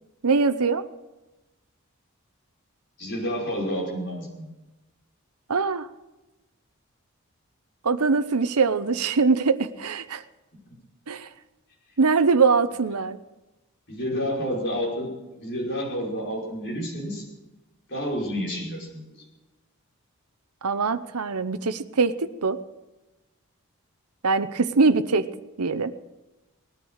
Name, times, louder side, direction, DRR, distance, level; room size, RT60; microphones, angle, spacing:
voice 1, 0.2-0.8 5.5-5.9 7.8-10.2 11.1-11.3 12.0-13.2 20.6-22.6 24.2-25.3 25.6-25.9, right 4 dB, 90° right, 12 dB, 0.8 m, -22 dB
voice 2, 3.0-4.5 13.9-15.1 15.4-17.2 17.9-19.0, equal, 50° left, -4 dB, 5.5 m, -29 dB
19.5 x 10.0 x 6.5 m, 1.1 s
head